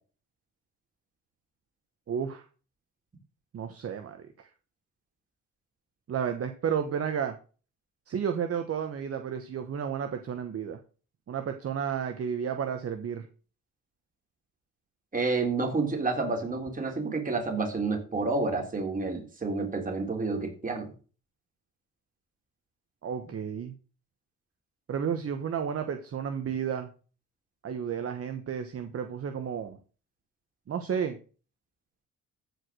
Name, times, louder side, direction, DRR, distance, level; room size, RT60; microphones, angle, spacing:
voice 1, 2.1-2.4 3.5-4.5 6.1-7.3 8.1-10.8 11.3-13.3 23.0-23.8 24.9-26.9 27.6-29.8 30.7-31.2, right 7 dB, 45° right, 7 dB, 1.2 m, -32 dB
voice 2, 15.1-20.9, right 3 dB, 25° right, 2 dB, 3.7 m, -29 dB
14.5 x 5.1 x 6.2 m, 0.37 s
cardioid pair, 110°, 31 cm